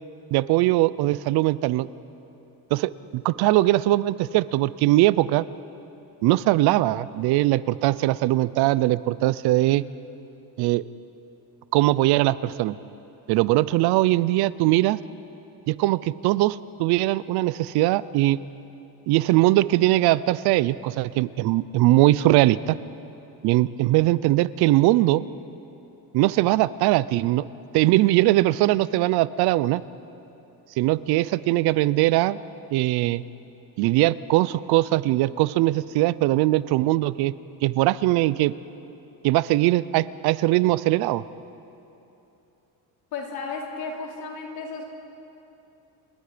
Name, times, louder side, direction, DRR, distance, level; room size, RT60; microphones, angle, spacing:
voice 1, 0.3-1.9 2.7-5.5 6.2-9.8 10.6-10.8 11.7-12.8 13.3-15.0 15.7-18.4 19.1-22.8 23.4-25.2 26.1-27.4 27.7-29.8 30.8-32.4 32.7-33.2 33.8-37.3 37.6-38.5 39.2-41.2, right 17 dB, 75° right, 18 dB, 0.6 m, -21 dB
voice 2, 43.1-44.8, left 4 dB, 70° left, -1 dB, 4.0 m, -33 dB
28.5 x 20.0 x 5.1 m, 2.9 s
cardioid pair, 145°, 38 cm